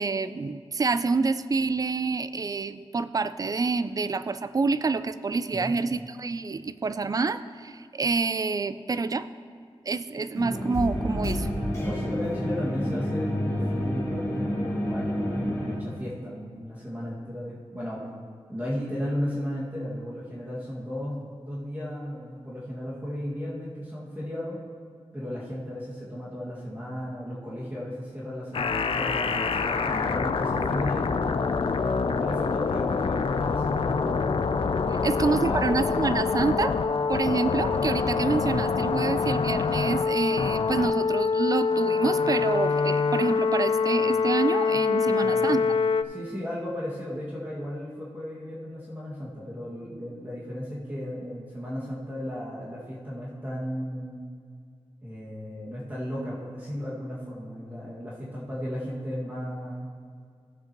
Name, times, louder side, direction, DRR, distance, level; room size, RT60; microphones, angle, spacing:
voice 1, 0.0-9.3 9.9-11.5 35.0-36.8 37.1-45.7, right 4 dB, 35° right, 13 dB, 0.4 m, -27 dB
sound 1, 10.4-15.8, equal, 30° left, 2.1 m, -29 dB
voice 2, 11.8-18.1 18.5-24.6 25.1-31.2 31.8-34.4 34.9-35.8 45.1-45.6 46.1-54.2 55.0-59.9, equal, 20° right, -8 dB, 1.9 m, -35 dB
sound 2, 28.5-46.0, left 5 dB, 60° left, 0.4 m, -25 dB
15.5 x 7.7 x 3.0 m, 2.1 s
wide cardioid pair, 125°, 11 cm